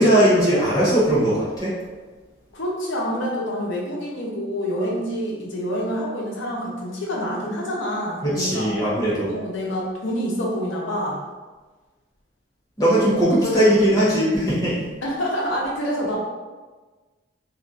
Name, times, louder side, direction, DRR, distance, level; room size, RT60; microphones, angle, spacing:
voice 1, 0.0-1.7 8.2-9.3 12.8-14.8, right 1 dB, 20° left, -9 dB, 0.9 m, -19 dB
voice 2, 2.5-8.7 9.3-11.2 13.0-13.8 15.0-16.2, equal, 80° left, -3 dB, 0.7 m, -27 dB
3.1 x 2.4 x 2.6 m, 1.3 s
head